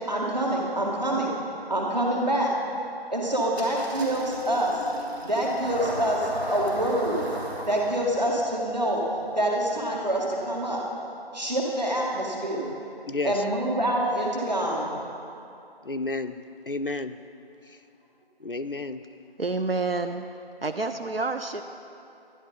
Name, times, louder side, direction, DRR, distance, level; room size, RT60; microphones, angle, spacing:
voice 1, 0.1-1.3 1.7-2.5 3.1-4.8 5.2-7.2 7.7-9.0 9.3-10.8 11.3-12.7 13.2-14.9, right 1 dB, 45° right, -2 dB, 2.0 m, -26 dB
Engine starting, 3.5-10.9, equal, 90° right, 2.9 m, -37 dB
voice 2, 13.1-13.4 15.8-16.4 16.7-17.1 18.4-19.0, left 3 dB, 60° left, 10 dB, 0.5 m, -31 dB
voice 3, 19.4-20.3 20.6-21.6, right 3 dB, 70° right, 7 dB, 0.6 m, -28 dB
12.0 x 10.5 x 5.1 m, 2.6 s
figure-of-eight pair, 170°, 31 cm